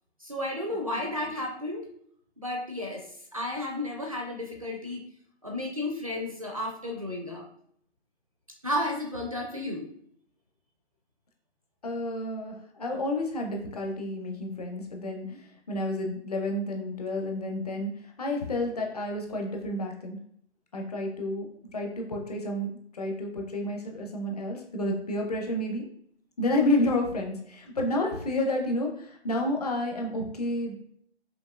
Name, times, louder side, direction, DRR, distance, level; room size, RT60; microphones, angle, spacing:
voice 1, 0.2-1.9 2.4-5.0 5.4-7.5 8.6-9.9, left 1 dB, 30° right, 1 dB, 0.4 m, -33 dB
voice 2, 11.8-20.2 20.7-21.5 21.7-25.9 26.4-30.9, left 1 dB, 35° left, 2 dB, 0.6 m, -30 dB
5.2 x 2.7 x 2.4 m, 0.66 s
hypercardioid pair, 160°, 34 cm